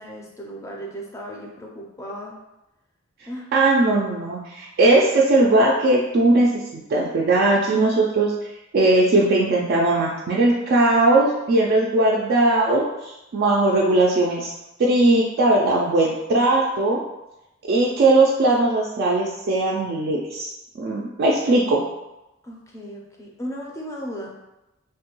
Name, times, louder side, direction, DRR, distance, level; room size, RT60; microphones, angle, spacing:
voice 1, 0.0-2.3 3.3-3.5 22.4-24.3, equal, 15° left, -1 dB, 0.5 m, -35 dB
voice 2, 3.5-8.3 8.7-14.5 14.8-17.0 17.7-20.5 20.8-21.8, right 2 dB, 50° right, -3 dB, 0.3 m, -19 dB
3.1 x 2.2 x 2.9 m, 0.96 s
head